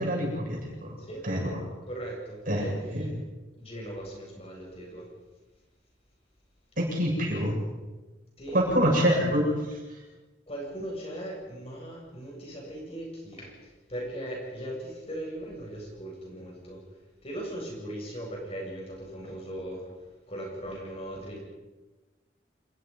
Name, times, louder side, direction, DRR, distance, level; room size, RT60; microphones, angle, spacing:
voice 1, 0.0-1.0 1.2-1.6 2.5-3.1 6.8-7.6 8.5-9.5, equal, 50° right, -1 dB, 7.8 m, -26 dB
voice 2, 1.9-3.1 3.6-5.1 8.4-9.0 10.5-13.5 13.9-16.8 17.2-19.9 20.3-21.4, right 1 dB, 35° left, -1 dB, 7.9 m, -38 dB
28.0 x 21.5 x 5.6 m, 1.2 s
head